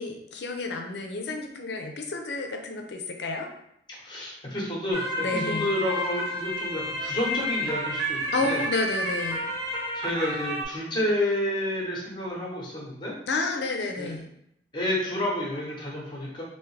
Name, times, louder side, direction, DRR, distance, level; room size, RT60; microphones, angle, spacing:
voice 1, 0.0-3.5 5.2-5.7 8.3-9.5 13.3-14.3, left 3 dB, 70° left, 3 dB, 0.6 m, -30 dB
voice 2, 4.0-8.6 9.9-13.1 14.0-14.1 14.7-16.4, left 1 dB, 25° left, -3 dB, 0.9 m, -30 dB
sound 1, 4.9-10.6, equal, 20° right, 0.7 m, -30 dB
3.5 x 2.7 x 3.2 m, 0.76 s
head